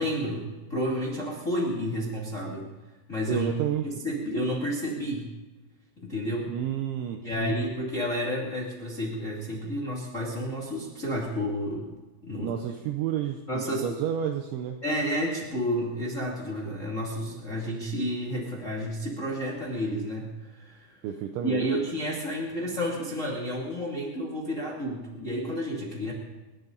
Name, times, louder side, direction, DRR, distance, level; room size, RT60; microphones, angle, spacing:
voice 1, 0.0-2.7 3.1-3.5 3.8-5.3 6.0-6.5 7.2-11.9 12.2-12.6 13.5-14.0 14.8-21.0 21.4-26.1, equal, 30° left, -3 dB, 1.5 m, -31 dB
voice 2, 3.3-3.9 6.5-7.7 12.4-14.8 21.0-21.7, right 10 dB, 75° right, 5 dB, 2.9 m, -31 dB
29.5 x 12.0 x 4.0 m, 1.2 s
omnidirectional pair, 6.0 m